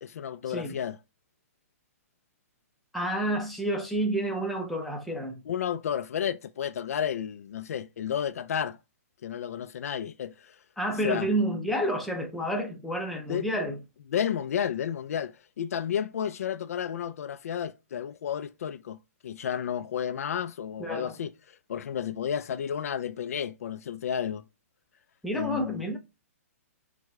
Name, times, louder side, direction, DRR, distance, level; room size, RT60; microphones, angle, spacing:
voice 1, 0.0-1.0 5.5-8.8 9.2-10.6 11.0-11.3 13.3-13.4 14.1-19.0 19.2-21.3 21.7-24.4 25.3-25.8, left 8 dB, 70° left, 0.4 m, -32 dB
voice 2, 2.9-5.4 10.8-13.8 20.8-21.1 25.2-26.0, right 1 dB, ahead, 0.6 m, -29 dB
4.8 x 2.2 x 3.6 m
hypercardioid pair, 165°, 8 cm